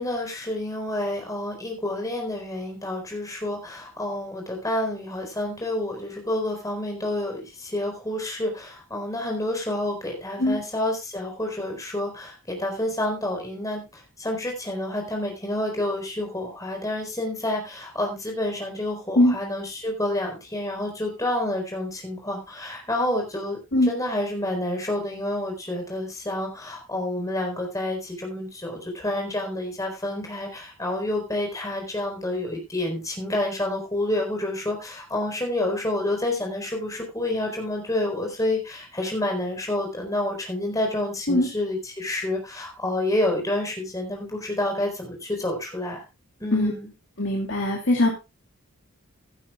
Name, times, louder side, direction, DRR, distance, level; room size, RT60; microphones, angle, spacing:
voice 1, 0.0-46.0 46.4-46.9, left 1 dB, 15° left, 1 dB, 4.4 m, -29 dB
voice 2, 47.2-48.1, left 1 dB, 55° left, 1 dB, 2.6 m, -20 dB
16.5 x 11.5 x 2.4 m, 0.26 s
head